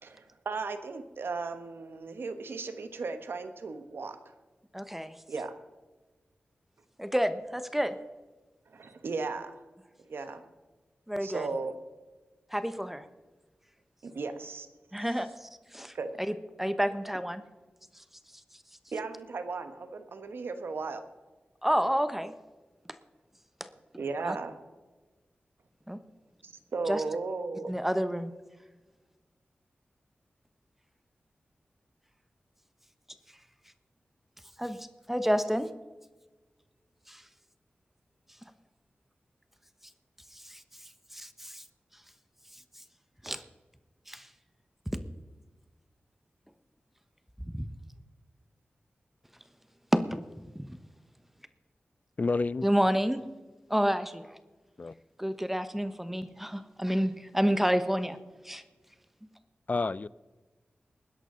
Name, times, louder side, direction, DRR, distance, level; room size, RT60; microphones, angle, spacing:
voice 1, 0.0-4.2 5.3-5.5 8.7-9.5 10.1-10.5 11.2-11.8 14.0-14.7 15.9-16.1 18.9-21.0 24.0-24.6 26.4-27.7, right 4 dB, 80° right, 1.2 m, -36 dB
voice 2, 4.7-5.2 7.0-8.0 11.1-11.5 12.5-13.1 14.9-15.9 16.3-17.4 17.9-18.0 21.6-22.3 23.6-23.7 24.2-24.4 25.9-26.0 26.9-27.0 27.7-28.3 34.6-35.7 37.1-37.2 40.3-40.6 41.1-41.6 43.2-43.4 44.1-44.3 47.5-47.7 49.9-50.2 50.5-50.8 52.6-53.2 53.7-54.4 55.2-58.2 58.4-58.6, equal, 5° right, 1.0 m, -29 dB
voice 3, 52.2-52.7 54.8-54.9 59.7-60.1, left 3 dB, 45° left, 0.4 m, -29 dB
20.0 x 11.0 x 3.9 m
cardioid pair, 55°, 4 cm